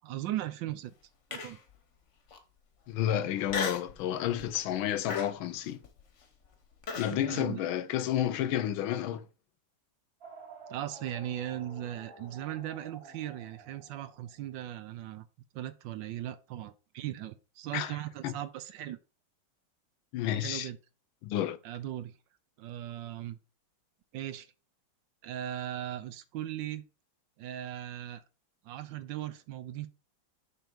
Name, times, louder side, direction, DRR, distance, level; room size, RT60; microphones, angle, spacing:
voice 1, 0.0-0.9 1.3-1.6 7.1-7.6 10.7-15.3 15.5-19.0 20.4-20.8 21.6-22.1 22.6-23.4 24.1-24.5 25.2-26.8 27.4-28.2 28.6-29.9, right 12 dB, 75° right, 1.2 m, -38 dB
Human voice, 1.3-1.7 2.3-2.4 3.5-4.0 4.4-4.7 5.1-7.1, left 5 dB, 45° left, 1.1 m, -36 dB
voice 2, 2.9-5.8 7.0-9.2 17.7-18.0 18.2-18.3 20.1-20.7 21.2-21.6, left 11 dB, 80° left, 1.5 m, -31 dB
sound 1, 10.2-14.7, right 3 dB, 45° right, 2.6 m, -51 dB
6.9 x 3.8 x 5.2 m
omnidirectional pair, 2.2 m